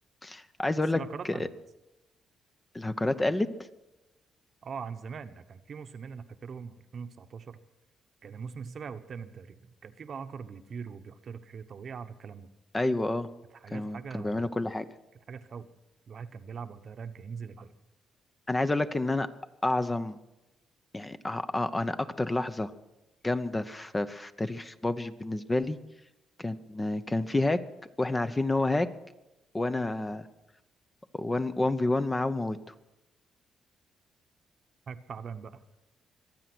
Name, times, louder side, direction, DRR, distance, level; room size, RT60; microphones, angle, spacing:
voice 1, 0.2-1.5 2.7-3.5 12.7-13.3 13.7-14.9 18.5-19.3 19.6-20.2 20.9-22.7 23.2-25.8 26.4-27.6 28.0-28.9 29.5-30.3 31.1-32.6, left 2 dB, 15° left, 10 dB, 0.8 m, -29 dB
voice 2, 0.9-1.5 4.6-7.6 8.2-12.5 13.6-14.4 15.3-15.7 16.1-17.7 34.9-35.5, right 6 dB, 50° right, 9 dB, 1.0 m, -41 dB
24.5 x 9.0 x 6.1 m, 0.98 s
cardioid pair, 90°, 0 cm